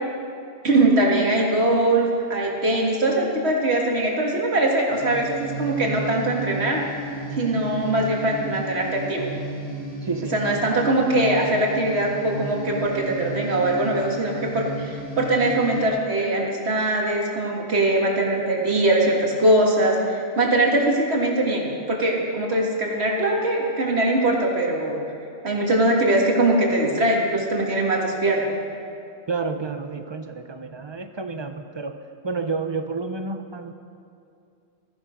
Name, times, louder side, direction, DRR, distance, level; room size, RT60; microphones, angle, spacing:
voice 1, 0.6-6.8 7.4-9.3 10.3-25.0 25.4-28.6, right 1 dB, 80° right, -1 dB, 2.2 m, -22 dB
sound 1, 4.9-15.9, right 2 dB, 30° left, 2.9 m, -33 dB
voice 2, 10.0-10.4 29.3-32.0 32.2-33.7, right 4 dB, 30° right, 8 dB, 0.7 m, -30 dB
15.5 x 14.0 x 5.1 m, 2.5 s
omnidirectional pair, 1.1 m